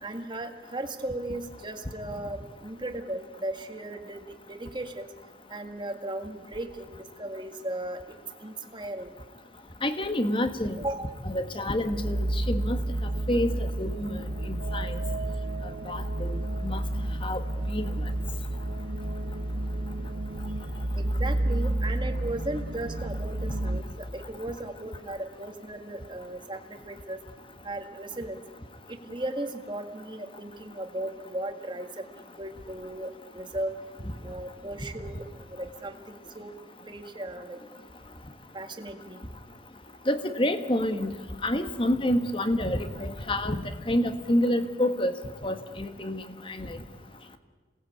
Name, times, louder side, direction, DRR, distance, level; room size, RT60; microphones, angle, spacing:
voice 1, 0.0-5.1 5.5-8.0 8.4-9.1 10.8-11.2 21.0-27.2 27.6-28.4 28.9-32.1 32.4-33.7 34.2-36.5 36.9-37.6 38.5-39.2, right 1 dB, 25° right, 5 dB, 1.9 m, -36 dB
voice 2, 9.8-10.8 11.2-12.8 13.3-14.2 14.4-15.0 15.9-16.8 17.2-17.4 17.7-17.9 40.1-41.1 41.4-45.1 45.4-46.8, left 1 dB, 25° left, 9 dB, 1.5 m, -28 dB
sound 1, 11.9-23.8, right 1 dB, 65° right, 1.3 m, -30 dB
27.5 x 18.5 x 8.7 m, 1.4 s
head